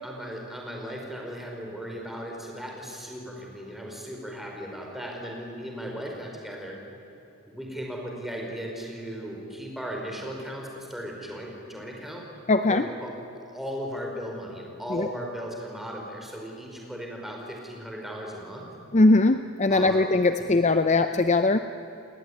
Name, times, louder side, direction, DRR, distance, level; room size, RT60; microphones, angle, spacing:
voice 1, 0.0-6.8 7.5-12.2 12.7-13.1 13.5-18.6 19.7-20.0, equal, ahead, -1 dB, 5.0 m, -37 dB
voice 2, 12.5-12.8 14.9-15.1 18.9-21.6, left 2 dB, 30° left, 9 dB, 0.6 m, -20 dB
30.0 x 19.5 x 9.6 m, 2.9 s
head